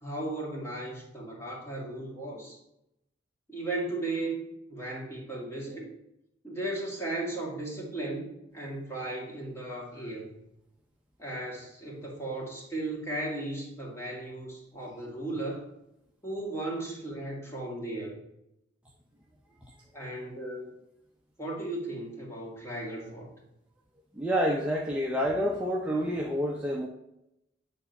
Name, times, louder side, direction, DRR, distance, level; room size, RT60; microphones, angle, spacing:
voice 1, 0.0-2.6 3.5-4.4 4.7-5.9 6.4-8.3 8.5-10.3 11.2-15.6 16.2-18.2 19.9-20.7 21.4-23.3, right 2 dB, 15° left, -4 dB, 2.1 m, -36 dB
voice 2, 24.2-26.9, equal, 5° right, -2 dB, 0.6 m, -28 dB
8.7 x 4.0 x 5.3 m, 0.84 s
head